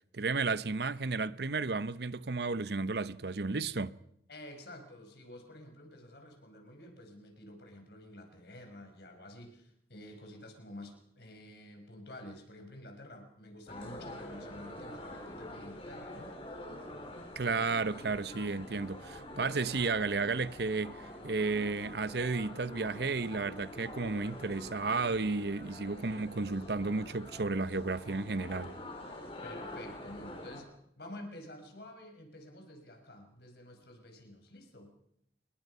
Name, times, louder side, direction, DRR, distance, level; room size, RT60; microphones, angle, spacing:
voice 1, 0.1-4.0 17.4-28.7, right 4 dB, 65° right, 0.8 m, -33 dB
voice 2, 4.3-16.3 29.4-34.9, left 1 dB, 65° left, 5.5 m, -50 dB
sound 1, 13.7-30.6, left 1 dB, 35° left, 4.8 m, -46 dB
27.5 x 21.5 x 5.5 m
head